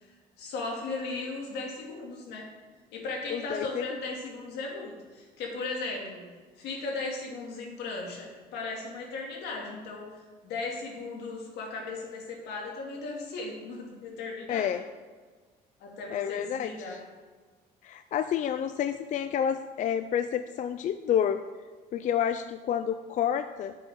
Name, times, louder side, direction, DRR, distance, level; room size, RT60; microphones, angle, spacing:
voice 1, 0.4-2.5 2.9-6.3 6.6-10.1 10.4-14.7 15.8-17.0, left 3 dB, 80° left, -1 dB, 2.4 m, -36 dB
voice 2, 3.3-3.8 14.5-14.8 16.1-17.0 17.8-21.4 21.9-23.8, left 9 dB, 50° left, 10 dB, 0.4 m, -29 dB
11.0 x 7.6 x 3.7 m, 1.4 s
cardioid pair, 110°, 17 cm